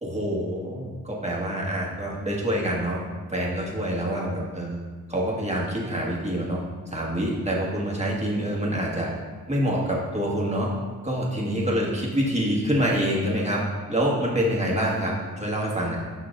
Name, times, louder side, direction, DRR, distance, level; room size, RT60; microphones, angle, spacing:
voice 1, 0.0-3.0 3.3-4.8 5.1-6.6 6.9-9.1 9.5-10.7 11.0-13.6 13.9-16.0, equal, 20° right, -3 dB, 1.6 m, -26 dB
7.3 x 5.6 x 2.6 m, 1.4 s
cardioid pair, 60°, 35 cm